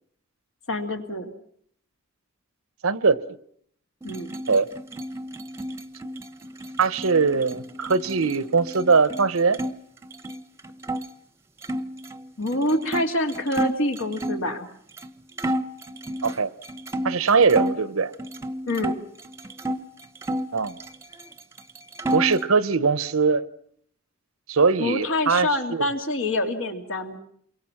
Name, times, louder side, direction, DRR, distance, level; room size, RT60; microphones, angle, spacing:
voice 1, 0.7-1.3 4.0-4.3 12.4-14.7 18.7-19.0 24.8-27.2, left 1 dB, 70° left, 2.7 m, -26 dB
voice 2, 2.8-3.2 4.5-4.7 6.8-9.6 16.2-16.5 17.0-18.1 20.5-20.7 22.1-23.5 24.5-25.8, right 4 dB, 85° right, 0.9 m, -21 dB
sound 1, 4.0-9.7 10.0-11.0 11.6-14.5 15.0-15.1 15.4-17.8 18.2-19.8 20.2-21.3 21.6-22.5, right 1 dB, 15° right, 0.9 m, -31 dB
28.0 x 23.5 x 5.9 m
head